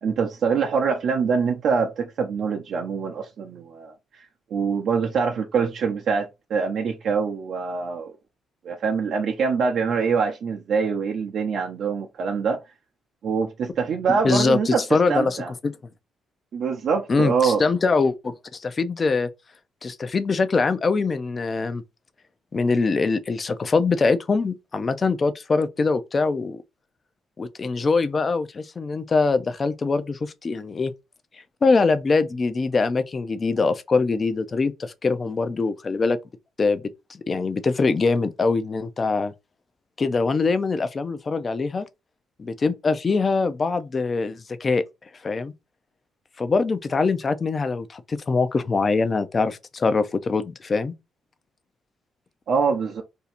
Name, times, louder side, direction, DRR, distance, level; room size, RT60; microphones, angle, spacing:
voice 1, 0.0-4.2 4.5-8.2 8.6-12.6 13.2-14.8 15.1-15.5 16.5-17.6 52.5-53.0, right 5 dB, 65° right, 0.6 m, -24 dB
voice 2, 14.1-15.4 15.6-15.7 17.1-19.3 19.8-21.8 22.5-26.6 27.4-30.9 31.6-36.2 36.6-36.8 37.1-39.3 40.0-41.9 42.4-44.8 45.2-45.5 46.4-50.9, left 4 dB, 35° left, 0.5 m, -23 dB
2.7 x 2.4 x 4.2 m
cardioid pair, 90°, 0 cm